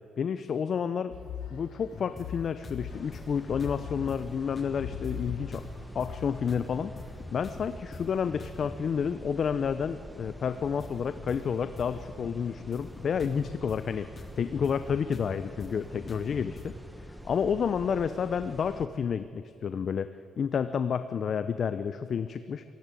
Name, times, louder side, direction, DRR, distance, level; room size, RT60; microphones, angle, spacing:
voice 1, 0.2-1.1 1.5-5.6 5.9-6.9 7.3-16.7 17.2-20.1 20.4-22.6, left 7 dB, 55° left, 11 dB, 0.7 m, -30 dB
sound 1, 1.1-6.5, left 8 dB, 90° left, 5.6 m, -41 dB
sound 2, 1.9-2.3 2.6-2.8 3.1-4.2 4.6-8.8 10.1-16.7, left 4 dB, 30° left, 2.5 m, -44 dB
sound 3, 2.9-18.9, equal, 5° right, 1.5 m, -47 dB
18.0 x 15.5 x 9.2 m, 2.5 s
cardioid pair, 90°, 0 cm